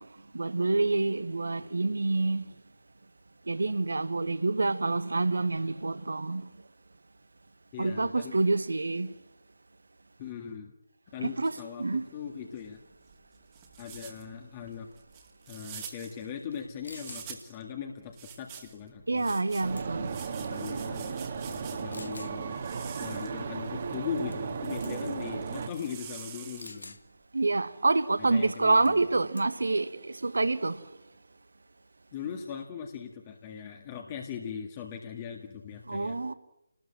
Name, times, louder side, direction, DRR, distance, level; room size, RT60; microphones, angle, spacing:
voice 1, 0.3-2.4 3.5-6.4 7.8-9.1 11.2-12.0 19.1-20.1 27.3-30.8 35.9-36.3, right 3 dB, 60° right, 1.5 m, -27 dB
voice 2, 7.7-8.4 10.2-10.7 11.1-12.8 13.8-14.9 15.5-19.3 20.0-22.6 23.0-27.0 28.2-29.0 32.1-36.2, left 7 dB, 20° left, 1.9 m, -40 dB
sound 1, 12.5-17.6 18.1-22.0 22.5-26.9, right 8 dB, 20° right, 2.4 m, -48 dB
sound 2, 16.5-16.6 16.8-17.3 19.3-19.5 19.8-20.2 20.9-21.0 21.9-22.4 24.3-24.6 24.8-25.1 26.6-27.0 28.9-29.1 29.4-29.7, left 2 dB, 60° left, 1.7 m, -47 dB
sound 3, 19.6-25.7, right 5 dB, 35° right, 2.2 m, -35 dB
29.0 x 20.0 x 7.7 m
figure-of-eight pair, 155°, 0 cm